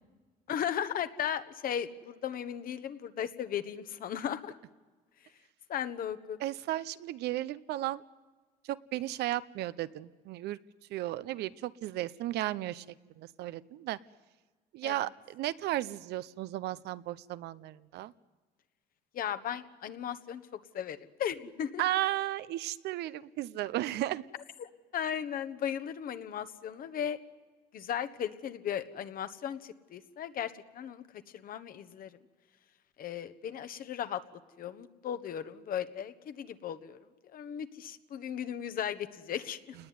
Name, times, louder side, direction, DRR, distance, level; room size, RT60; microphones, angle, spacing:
voice 1, 0.5-4.6 5.7-6.4 14.8-14.9 19.1-20.4 20.7-21.8 24.6-27.2 27.7-31.0 31.3-32.1 33.0-34.2 34.6-37.0 37.3-39.7, left 9 dB, 60° left, 11 dB, 1.3 m, -36 dB
voice 2, 6.4-8.0 8.7-10.6 10.9-12.8 13.2-14.0 14.7-18.1 21.8-24.2, right 14 dB, 80° right, 16 dB, 0.7 m, -34 dB
28.5 x 19.5 x 9.6 m, 1.4 s
cardioid pair, 110°, 17 cm